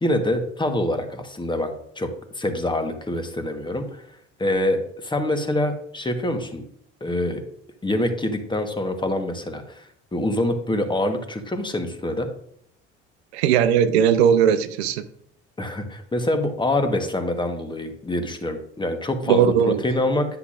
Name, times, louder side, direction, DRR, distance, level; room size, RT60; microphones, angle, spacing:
voice 1, 0.0-2.1 2.3-4.0 4.4-6.6 7.0-7.4 7.8-12.3 15.6-20.3, left 1 dB, 15° left, 6 dB, 1.3 m, -25 dB
voice 2, 13.3-15.0 19.3-19.8, right 8 dB, 70° right, 12 dB, 0.6 m, -18 dB
9.8 x 5.9 x 2.5 m, 0.66 s
figure-of-eight pair, 60°, 34 cm